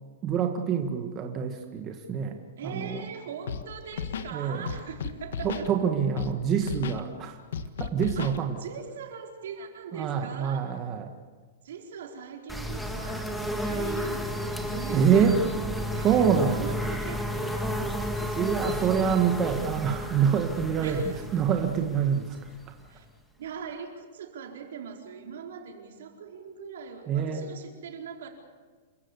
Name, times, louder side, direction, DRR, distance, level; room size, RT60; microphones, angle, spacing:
voice 1, 0.2-2.4 2.6-3.0 4.3-4.6 5.4-7.4 7.8-8.5 9.9-11.0 14.9-15.4 16.0-16.6 18.4-21.0 21.3-22.4 27.1-27.5, right 7 dB, 25° right, 4 dB, 1.6 m, -26 dB
voice 2, 2.6-5.7 8.1-11.0 11.6-18.6 20.8-21.2 22.9-23.0 23.4-28.3, right 6 dB, 75° right, 2 dB, 4.6 m, -41 dB
Scratching (performance technique), 3.5-3.6 3.9-4.3 4.7-5.7 6.2-6.3 6.6-7.0 7.5-8.4, left 7 dB, 80° left, 1.6 m, -33 dB
sound 1, 12.5-23.1, equal, ahead, 1.8 m, -32 dB
28.0 x 15.5 x 8.4 m, 1.5 s
supercardioid pair, 160°, 0 cm